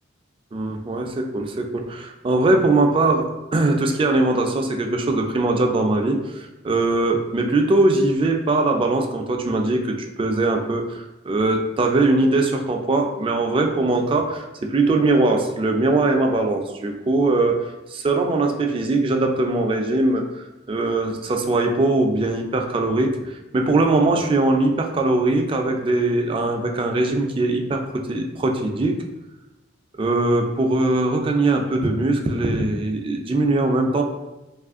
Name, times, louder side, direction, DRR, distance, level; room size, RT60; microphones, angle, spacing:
voice 1, 0.5-17.6 17.9-29.0 30.0-34.0, right 2 dB, 30° right, 3 dB, 0.3 m, -21 dB
2.9 x 2.4 x 3.5 m, 1.0 s
head